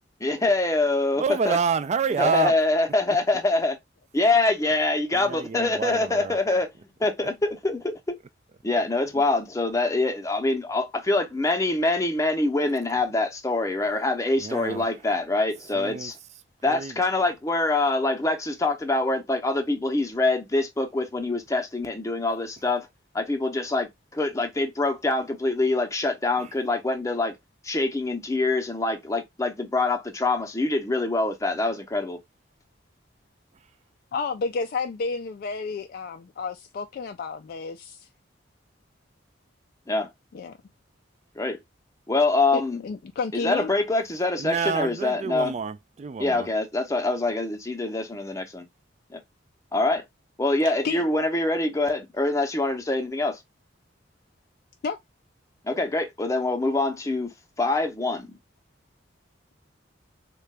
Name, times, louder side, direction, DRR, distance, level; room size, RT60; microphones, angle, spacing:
voice 1, 0.2-1.6 2.2-3.8 4.1-6.7 7.0-8.2 8.6-16.1 16.6-22.9 23.1-27.3 27.6-32.2 39.9-40.1 41.4-41.6 42.1-42.8 43.3-45.5 46.2-48.7 49.1-49.2 49.7-50.0 50.4-53.4 55.6-58.4, left 2 dB, 15° left, 0.6 m, -25 dB
voice 2, 1.2-2.6 5.1-6.4 7.2-7.3 14.4-14.9 15.7-16.1 16.7-17.0 26.4-26.5 44.4-46.5, right 5 dB, 35° right, 0.3 m, -28 dB
voice 3, 34.1-38.1 40.3-40.5 42.5-43.7 50.8-51.0 54.8-55.0, left 4 dB, 50° left, 0.3 m, -31 dB
3.7 x 2.3 x 3.2 m
head